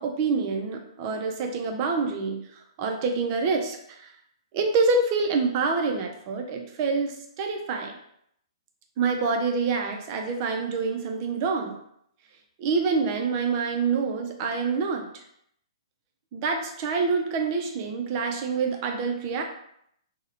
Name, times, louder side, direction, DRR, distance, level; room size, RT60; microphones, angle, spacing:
voice 1, 0.0-4.1 4.5-8.0 9.0-11.8 12.6-15.2 16.3-19.4, right 4 dB, 30° right, 3 dB, 0.3 m, -26 dB
2.5 x 2.0 x 2.8 m, 0.72 s
hypercardioid pair, 165°, 3 cm